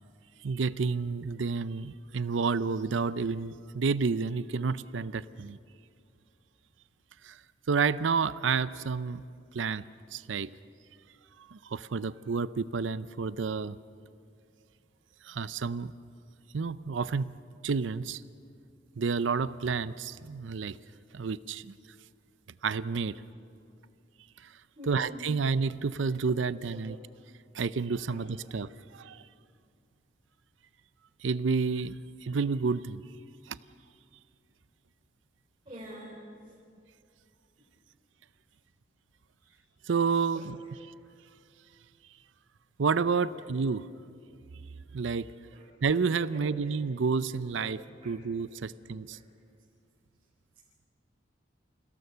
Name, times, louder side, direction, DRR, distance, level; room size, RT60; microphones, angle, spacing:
voice 1, 0.4-5.6 7.2-7.4 7.7-9.2 9.5-9.8 10.1-10.5 11.5-13.7 15.2-15.9 16.5-17.3 17.6-18.2 19.0-20.8 21.1-21.7 22.6-23.2 24.9-27.0 27.5-29.2 31.2-32.0 32.2-33.0 33.5-33.6 39.9-40.6 42.8-43.8 44.9-45.3 45.8-49.2, right 5 dB, 90° right, 16 dB, 0.6 m, -30 dB
voice 2, 24.8-25.2 26.5-26.8 28.1-28.2 35.7-36.2 39.4-39.6 40.3-40.7 43.3-43.6 45.5-45.7 46.3-46.6 47.5-47.7 48.0-48.2 48.5-48.6 49.1-49.2, equal, 30° right, -5 dB, 3.9 m, -47 dB
28.5 x 17.0 x 6.8 m, 2.4 s
head